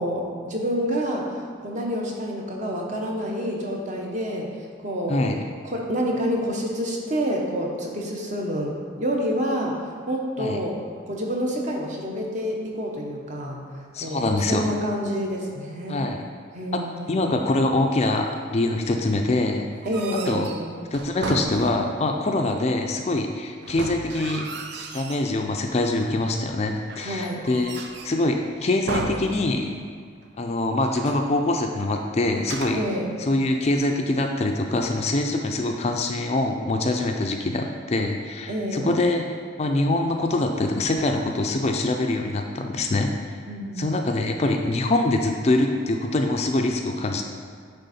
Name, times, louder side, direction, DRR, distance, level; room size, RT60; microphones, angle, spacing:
voice 1, 0.0-1.4 1.6-4.5 4.8-5.3 5.6-10.8 11.1-16.0 16.5-17.4 19.8-20.6 27.0-27.4 32.7-33.1 38.5-38.9 43.5-44.4, equal, 35° right, 0 dB, 0.9 m, -28 dB
voice 2, 13.9-14.6 15.9-16.2 16.7-16.8 17.1-19.7 20.3-20.5 20.9-24.4 24.9-27.8 28.0-29.7 30.4-32.8 33.2-39.2 39.6-43.1 43.8-47.2, left 2 dB, 30° left, 3 dB, 0.4 m, -24 dB
sound 1, 19.7-22.2 23.6-25.3 25.7-26.3 26.9-28.3 28.9-30.0 30.2-30.3 30.8-31.3 32.4-33.0, right 3 dB, 55° right, 0.5 m, -35 dB
9.1 x 3.6 x 4.2 m, 2.1 s
head